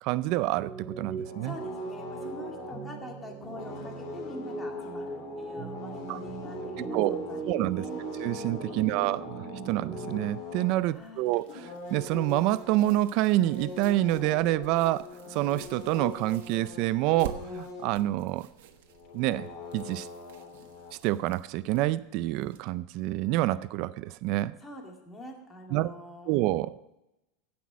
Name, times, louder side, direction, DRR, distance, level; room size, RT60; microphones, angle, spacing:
voice 1, 0.0-1.5 6.1-6.2 6.8-7.8 8.2-9.2 9.7-11.5 11.9-18.5 19.1-19.5 19.7-20.1 21.0-24.5 25.7-25.9 26.3-26.8, right 16 dB, 50° right, 17 dB, 0.4 m, -27 dB
sound 1, 0.6-10.2, right 4 dB, 15° right, 2.5 m, -39 dB
Dungchen Festival Horns - Bhutan, 1.1-3.2 3.4-7.5 7.8-10.8 11.3-18.0 18.4-18.5 18.7-20.9, left 5 dB, 50° left, 3.3 m, -43 dB
voice 2, 1.4-8.0 8.6-9.0 10.9-11.3 24.6-26.4, left 1 dB, 15° left, 1 dB, 2.3 m, -45 dB
sound 2, 10.9-22.6, right 10 dB, 75° right, 1.3 m, -49 dB
16.5 x 6.0 x 6.2 m, 0.92 s
supercardioid pair, 150°, 0 cm